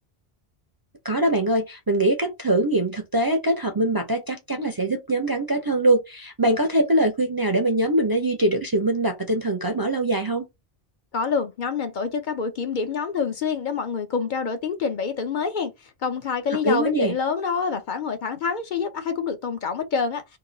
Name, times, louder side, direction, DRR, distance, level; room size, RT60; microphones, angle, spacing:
voice 1, 1.0-10.5 16.5-17.1, right 1 dB, 30° right, 0.4 m, -23 dB
voice 2, 11.1-20.4, left 5 dB, 55° left, 0.7 m, -27 dB
2.9 x 2.2 x 3.8 m
omnidirectional pair, 1.0 m